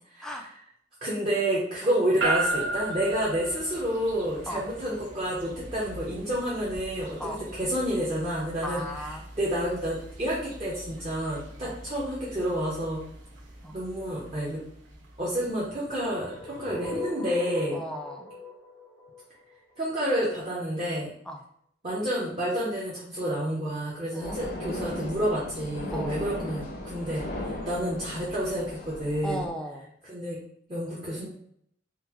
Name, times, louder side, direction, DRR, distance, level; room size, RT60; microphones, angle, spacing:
voice 1, 1.0-8.8 9.4-13.0 13.7-14.6 15.2-17.8 19.8-21.1 21.8-29.5 30.0-30.4 30.7-31.3, equal, 30° right, -7 dB, 0.7 m, -29 dB
sound 1, 2.2-16.5, right 2 dB, 85° right, 0.7 m, -37 dB
voice 2, 8.6-9.3 11.6-11.8 13.6-13.8 17.7-18.3 21.3-21.4 24.1-24.4 25.9-26.2 29.2-29.9, equal, 5° left, 1 dB, 0.3 m, -36 dB
sound 2, 15.8-19.9, left 3 dB, 85° left, 1.1 m, -39 dB
sound 3, 24.2-29.5, left 1 dB, 45° left, 0.6 m, -37 dB
3.7 x 2.1 x 2.9 m, 0.67 s
head